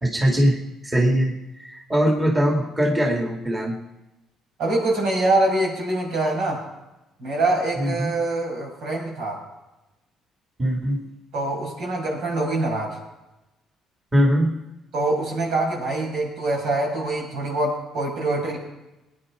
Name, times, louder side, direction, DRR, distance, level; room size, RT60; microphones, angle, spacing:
voice 1, 0.0-3.8 7.8-8.1 10.6-11.0 14.1-14.6, equal, 15° right, 0 dB, 2.2 m, -21 dB
voice 2, 4.6-6.6 7.2-9.4 11.3-13.0 14.9-18.6, right 2 dB, 75° right, -2 dB, 6.4 m, -24 dB
21.0 x 9.8 x 4.9 m, 0.99 s
cardioid pair, 120°, 0 cm